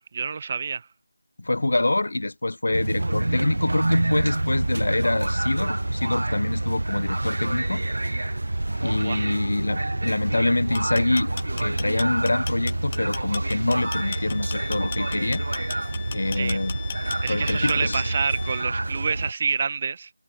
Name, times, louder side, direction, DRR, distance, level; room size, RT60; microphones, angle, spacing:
voice 1, 0.1-0.9 9.0-9.3 16.3-16.6 17.2-20.1, right 5 dB, 30° right, 0.7 m, -27 dB
voice 2, 1.4-7.8 8.8-11.3 11.6-15.4 16.1-16.8 17.3-18.0, left 2 dB, 65° left, 0.4 m, -25 dB
sound 1, 2.7-19.3, right 2 dB, 70° right, 0.4 m, -27 dB
sound 2, 10.6-18.3, left 6 dB, 25° left, 1.9 m, -36 dB
Wind instrument woodwind instrument, 13.8-18.7, left 29 dB, 10° left, 1.6 m, -43 dB
figure-of-eight pair, 170°, 0 cm